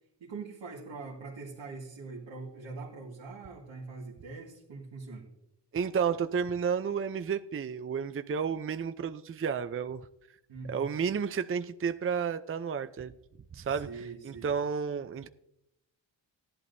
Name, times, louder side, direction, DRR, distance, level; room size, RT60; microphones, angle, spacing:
voice 1, 0.2-5.3 10.5-10.9 13.7-14.5, right 4 dB, 85° right, 1.9 m, -43 dB
voice 2, 5.7-10.0 10.7-13.1 13.5-13.9 14.2-15.3, right 6 dB, 30° right, 0.5 m, -31 dB
16.0 x 11.5 x 2.7 m
cardioid pair, 65°, 43 cm